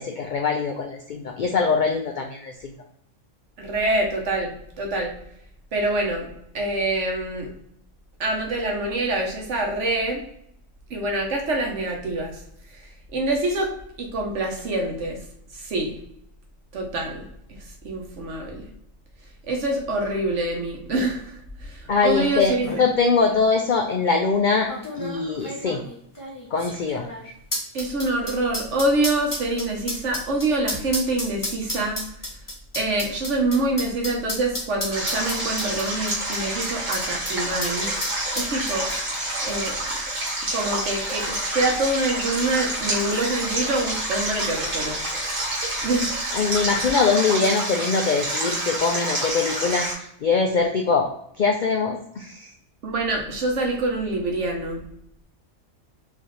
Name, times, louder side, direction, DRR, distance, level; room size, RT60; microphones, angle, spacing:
voice 1, 0.0-2.7 21.9-22.5 22.8-24.7 25.0-25.8 26.5-27.1 46.3-51.1 51.4-52.5, left 4 dB, 70° left, 2 dB, 0.4 m, -22 dB
voice 2, 3.6-5.1 5.7-6.3 6.5-7.5 8.2-10.2 10.9-12.4 13.1-15.2 15.5-16.0 16.7-18.7 19.4-22.8 27.7-32.0 32.7-37.9 38.4-38.9 39.4-39.8 40.5-45.0 45.8-46.1 52.8-54.8, right 2 dB, 65° right, 1 dB, 1.3 m, -26 dB
sound 1, 22.1-22.2 22.4-22.8 23.6-23.7 24.7-37.3 37.6-37.7 38.0-39.2 39.5-39.6, equal, 15° left, 0.8 m, -32 dB
Stream, 34.9-49.9, right 1 dB, 85° right, 2.0 m, -28 dB
4.9 x 2.7 x 3.1 m, 0.72 s
omnidirectional pair, 1.4 m